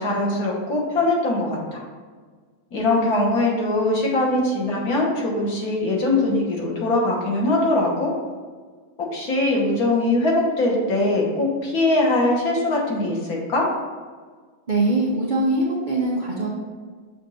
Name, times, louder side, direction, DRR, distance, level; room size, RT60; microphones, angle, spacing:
voice 1, 0.0-1.8 2.7-8.1 9.0-13.7, left 2 dB, 60° left, -3 dB, 1.6 m, -21 dB
voice 2, 14.7-16.5, right 2 dB, 60° right, -3 dB, 0.5 m, -22 dB
6.9 x 2.6 x 5.5 m, 1.5 s
omnidirectional pair, 1.9 m